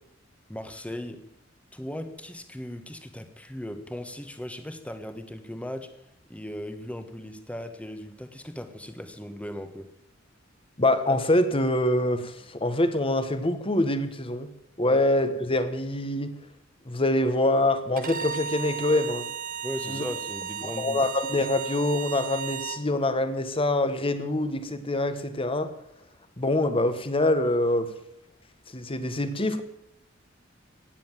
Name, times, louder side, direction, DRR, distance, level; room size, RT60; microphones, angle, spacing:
voice 1, 0.5-1.2 1.7-5.9 6.3-9.9 19.6-21.1, left 1 dB, 5° left, 8 dB, 1.4 m, -38 dB
voice 2, 10.8-14.5 14.8-16.3 16.8-19.2 19.9-20.0 20.8-25.7 26.4-27.9 28.7-29.6, left 1 dB, 30° left, 10 dB, 1.4 m, -25 dB
Bowed string instrument, 18.0-22.8, right 8 dB, 45° right, 1.0 m, -35 dB
16.0 x 9.8 x 7.4 m, 0.80 s
head